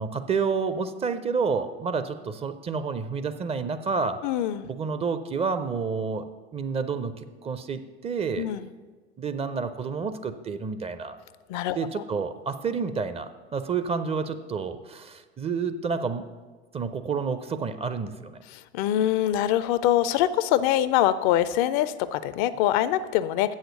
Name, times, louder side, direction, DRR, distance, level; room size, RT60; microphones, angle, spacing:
voice 1, 0.0-4.2 4.7-6.2 6.5-7.1 7.4-8.5 9.2-11.2 11.8-16.2 16.7-18.4, right 5 dB, 20° right, 10 dB, 0.5 m, -29 dB
voice 2, 4.2-4.7 8.4-8.6 11.5-12.0 18.5-23.5, left 12 dB, 45° left, 15 dB, 0.4 m, -24 dB
7.7 x 6.4 x 6.6 m, 1.3 s
figure-of-eight pair, 75°, 32 cm